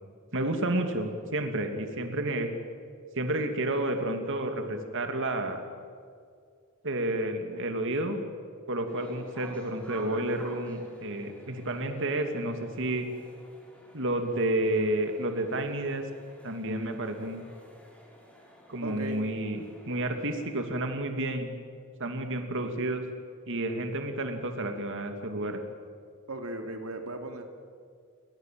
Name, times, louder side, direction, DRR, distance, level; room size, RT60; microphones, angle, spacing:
voice 1, 0.3-2.5 3.1-5.6 6.8-8.2 8.7-13.1 13.9-16.0 16.4-17.4 18.7-21.5 22.0-23.0 23.5-25.6, right 1 dB, 60° right, 5 dB, 2.8 m, -30 dB
sound 1, 8.9-20.6, right 1 dB, 5° left, 7.2 m, -52 dB
voice 2, 18.8-19.2 26.3-27.4, right 2 dB, 90° right, 5 dB, 2.8 m, -37 dB
29.5 x 24.0 x 7.9 m, 2.2 s
head